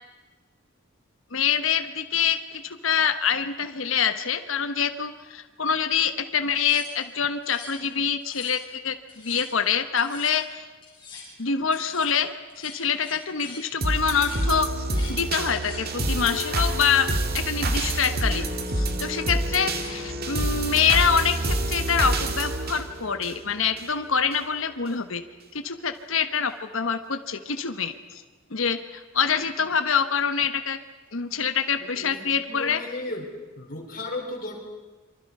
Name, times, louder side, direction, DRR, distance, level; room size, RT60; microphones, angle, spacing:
voice 1, 1.3-10.7 11.4-12.3 12.6-14.7 15.1-17.1 17.3-18.4 18.7-25.2 25.5-28.2 28.5-30.8 31.1-32.8, left 7 dB, 70° left, 8 dB, 1.2 m, -25 dB
sound 1, 6.6-7.9 8.2-8.7 9.1-9.5 10.0-10.4 10.8-11.3 11.7-12.1 12.5-13.7 14.0-14.4 14.8-15.2 15.5-16.6, left 4 dB, 25° left, 6.6 m, -44 dB
sound 2, 13.8-23.9 24.3-24.4, right 1 dB, 45° right, 2.2 m, -27 dB
voice 2, 31.8-33.3 33.6-34.6, left 2 dB, 45° left, 1 dB, 4.8 m, -35 dB
28.0 x 24.5 x 5.5 m, 1.2 s
head